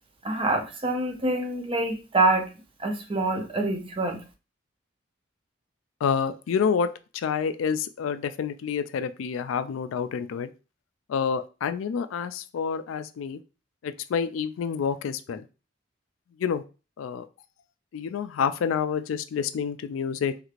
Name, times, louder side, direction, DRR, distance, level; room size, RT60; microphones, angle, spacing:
voice 1, 0.2-2.5 2.8-4.2, right 2 dB, 25° right, 4 dB, 0.6 m, -26 dB
voice 2, 6.0-10.5 11.1-13.4 13.8-15.5 16.4-16.6 17.0-17.3 17.9-20.4, left 6 dB, 85° left, 11 dB, 0.3 m, -28 dB
3.2 x 3.1 x 2.4 m, 0.32 s
head